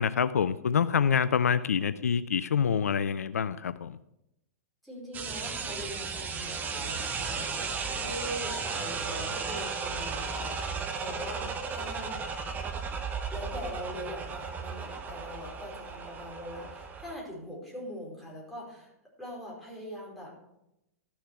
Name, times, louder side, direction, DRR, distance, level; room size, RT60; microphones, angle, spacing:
voice 1, 0.0-4.0, left 7 dB, 75° left, 15 dB, 0.4 m, -26 dB
voice 2, 4.8-12.2 13.3-18.9 19.2-20.3, equal, ahead, -5 dB, 4.8 m, -42 dB
sound 1, 5.1-17.1, right 5 dB, 20° right, 1.2 m, -35 dB
13.0 x 7.1 x 4.8 m, 0.85 s
figure-of-eight pair, 105°, 8 cm